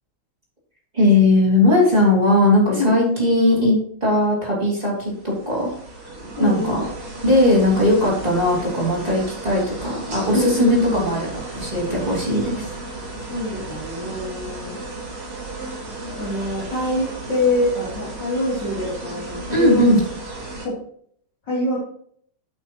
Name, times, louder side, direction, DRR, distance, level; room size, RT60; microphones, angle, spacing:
voice 1, 0.9-5.7 6.4-6.9 7.2-12.7 19.5-20.0, left 1 dB, 10° right, -5 dB, 3.0 m, -18 dB
sound 1, 4.9-20.7, right 2 dB, 40° right, 3.1 m, -34 dB
voice 2, 6.4-6.8 10.3-11.2 13.3-14.7 16.1-20.0 20.6-20.8 21.5-21.8, left 1 dB, 30° left, -10 dB, 3.8 m, -25 dB
8.8 x 8.6 x 3.1 m, 0.62 s
omnidirectional pair, 3.8 m